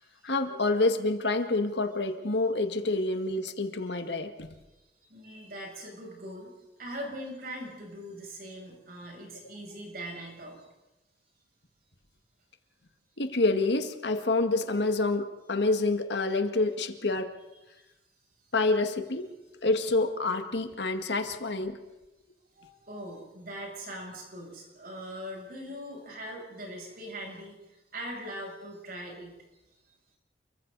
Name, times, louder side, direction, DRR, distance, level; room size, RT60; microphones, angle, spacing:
voice 1, 0.2-4.5 13.2-17.4 18.5-19.3 19.6-21.8, left 2 dB, 80° left, 7 dB, 1.8 m, -27 dB
voice 2, 5.1-6.5 6.8-10.7 22.5-29.3, equal, 55° right, -1 dB, 7.9 m, -41 dB
29.5 x 23.5 x 4.1 m, 1.0 s
head